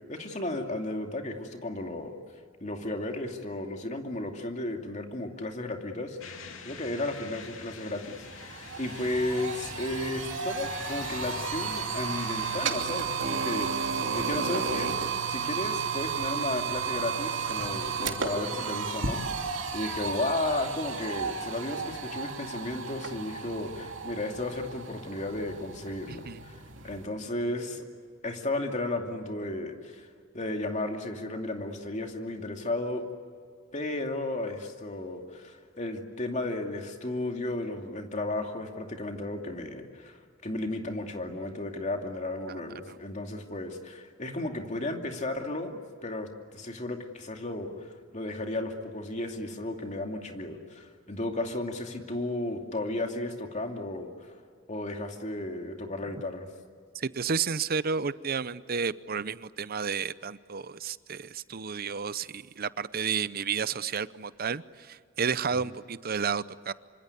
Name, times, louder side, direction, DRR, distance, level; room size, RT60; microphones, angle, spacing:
voice 1, 0.1-2.1 2.6-6.2 6.6-14.9 15.3-26.6 26.8-27.8 28.2-30.1 30.3-33.0 33.7-40.2 40.4-54.3 54.7-56.5 65.5-65.6, left 2 dB, 35° left, 3 dB, 2.6 m, -34 dB
sound 1, 6.2-12.7, left 4 dB, 85° left, 2.8 m, -45 dB
sound 2, 7.6-7.7 8.0-27.1, right 5 dB, 65° right, 2.9 m, -33 dB
voice 2, 26.1-26.4 42.5-42.6 42.9-43.0 56.9-66.7, right 6 dB, 50° right, 16 dB, 0.7 m, -32 dB
26.5 x 25.5 x 8.4 m, 2.1 s
head